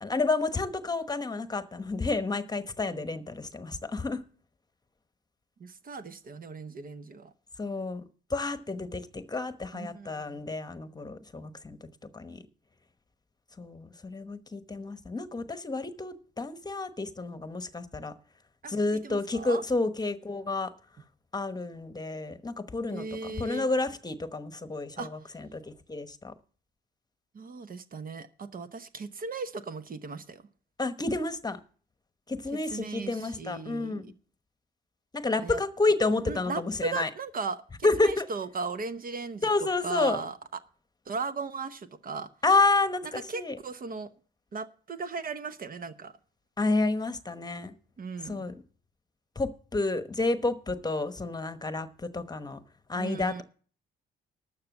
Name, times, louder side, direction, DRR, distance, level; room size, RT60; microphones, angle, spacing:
voice 1, 0.0-4.2 7.6-8.0 8.3-11.8 12.1-12.4 13.6-18.1 18.7-20.7 21.3-23.0 23.4-25.1 25.5-26.3 30.8-31.6 32.3-34.0 35.1-37.1 37.8-38.2 39.4-40.2 42.4-43.6 46.6-47.7 48.3-48.5 49.3-52.6 52.9-53.4, left 3 dB, 20° left, 1.0 m, -30 dB
voice 2, 5.6-7.3 9.7-10.4 18.6-19.6 22.9-23.7 25.0-25.3 27.3-30.5 32.5-34.1 35.4-35.6 36.3-40.6 41.0-42.3 43.0-44.1 44.5-46.2 48.0-48.5 52.9-53.4, right 4 dB, 45° right, 0.9 m, -37 dB
12.5 x 6.8 x 7.1 m
cardioid pair, 90°, 20 cm